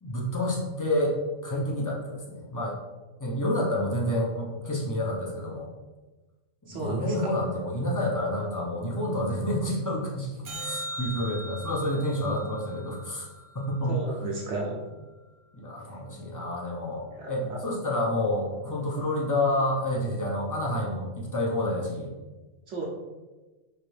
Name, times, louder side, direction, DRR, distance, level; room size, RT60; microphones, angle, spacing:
voice 1, 0.0-2.8 3.2-5.7 6.7-10.3 10.6-13.3 13.5-14.0 15.5-22.1, left 1 dB, 20° left, -3 dB, 0.6 m, -29 dB
voice 2, 6.7-7.3 13.9-14.8 17.1-17.6 22.7-22.8, right 3 dB, 65° right, -4 dB, 1.0 m, -33 dB
sound 1, 10.5-14.9 21.5-21.6, right 1 dB, 30° right, 0.7 m, -41 dB
4.8 x 2.6 x 3.2 m, 1.2 s
omnidirectional pair, 1.3 m